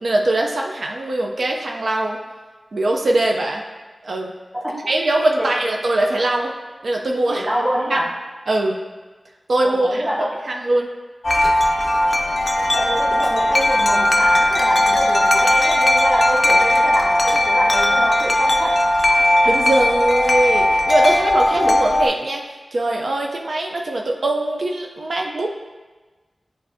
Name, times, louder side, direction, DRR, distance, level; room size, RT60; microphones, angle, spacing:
voice 1, 0.0-2.2 2.7-3.6 4.0-4.3 4.7-6.5 6.8-7.5 7.9-8.0 8.5-8.8 9.5-10.0 10.5-10.9 19.4-22.4 22.7-25.5, right 1 dB, 75° right, 0 dB, 0.4 m, -21 dB
voice 2, 7.3-8.1 9.6-10.3 12.7-18.8, equal, 15° right, -6 dB, 0.6 m, -26 dB
Wind chime, 11.2-22.1, left 1 dB, 50° left, 0.4 m, -17 dB
7.5 x 2.6 x 2.6 m, 1.3 s
wide cardioid pair, 80°, 0 cm